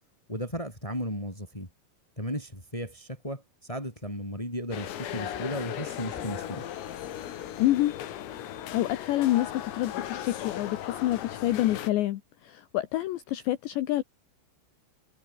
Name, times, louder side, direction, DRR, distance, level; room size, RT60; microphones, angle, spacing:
voice 1, 0.3-1.7 2.2-6.6, equal, 5° left, 7.6 m, -35 dB
sound 1, 4.7-11.9, left 11 dB, 85° left, 5.2 m, -37 dB
voice 2, 7.6-7.9 8.7-14.0, left 15 dB, 70° left, 3.2 m, -27 dB
omnidirectional pair, 5.8 m